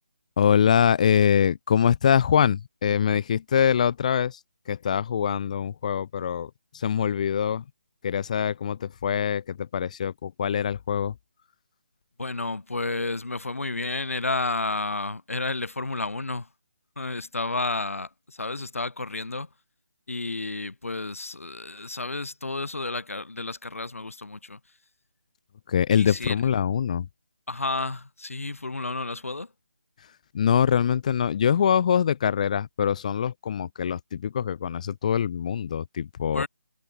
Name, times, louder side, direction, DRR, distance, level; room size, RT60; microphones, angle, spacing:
voice 1, 0.4-4.4 4.7-7.6 8.0-11.1 25.7-27.1 30.3-36.4, left 8 dB, 25° left, 1.0 m, -24 dB
voice 2, 12.2-16.5 17.0-19.5 20.1-24.6 25.9-26.4 27.5-29.5 36.3-36.5, left 2 dB, 60° left, 7.6 m, -31 dB
figure-of-eight pair, 150°, 8 cm